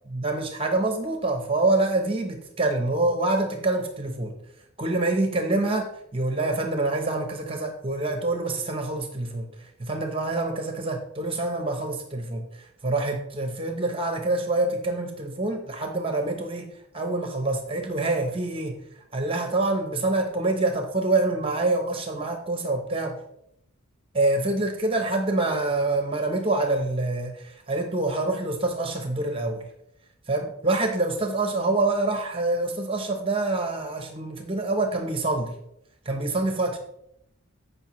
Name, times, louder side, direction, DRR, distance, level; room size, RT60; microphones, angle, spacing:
voice 1, 0.1-4.3 4.8-18.8 19.1-23.2 24.1-29.7 30.3-35.5 36.0-36.8, right 2 dB, 25° right, 4 dB, 0.9 m, -26 dB
14.5 x 5.5 x 3.1 m, 0.77 s
head